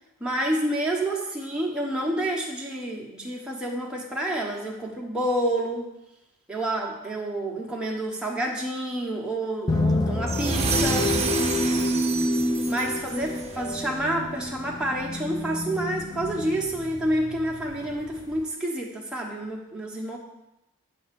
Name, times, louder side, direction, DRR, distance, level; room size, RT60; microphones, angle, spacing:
voice 1, 0.2-5.9 6.5-11.2 12.3-12.4 12.7-20.2, right 1 dB, 5° right, -3 dB, 1.2 m, -29 dB
sound 1, 9.7-18.4, left 1 dB, 15° left, 0.4 m, -28 dB
sound 2, 10.3-13.6, right 3 dB, 30° right, 0.9 m, -29 dB
8.6 x 3.8 x 6.9 m, 0.90 s
head